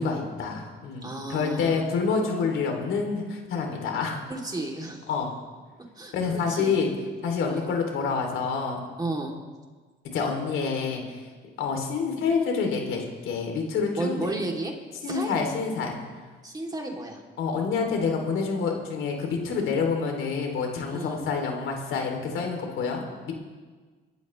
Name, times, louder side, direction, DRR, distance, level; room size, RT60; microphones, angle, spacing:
voice 1, 0.0-4.2 5.1-5.3 6.1-6.9 7.2-8.8 10.1-11.0 11.6-14.3 15.0-16.0 17.4-23.3, left 5 dB, 85° left, 2 dB, 2.9 m, -27 dB
voice 2, 1.0-1.8 4.3-5.0 6.0-6.7 7.4-7.7 9.0-9.4 13.9-14.7 15.0-15.3 16.4-17.2 20.9-21.2, right 2 dB, 20° right, 0 dB, 2.9 m, -33 dB
25.0 x 13.0 x 3.2 m, 1.4 s
cardioid pair, 90°, 20 cm